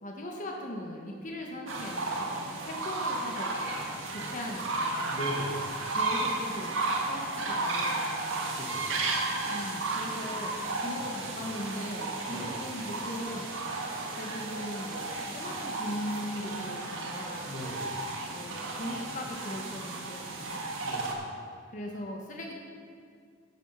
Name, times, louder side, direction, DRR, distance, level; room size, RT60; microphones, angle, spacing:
voice 1, 0.0-3.7 4.1-5.2 5.9-6.7 7.0-8.7 9.5-13.5 14.1-17.5 18.3-20.6 21.7-22.5, left 1 dB, 40° left, 0 dB, 1.2 m, -39 dB
sound 1, 1.7-21.1, right 2 dB, 80° right, 1.7 m, -33 dB
voice 2, 5.1-5.7 8.6-8.9 10.8-11.1 12.3-12.6 17.4-17.9 20.8-21.2, equal, 60° left, -7 dB, 1.9 m, -39 dB
10.5 x 8.0 x 5.6 m, 2.2 s
head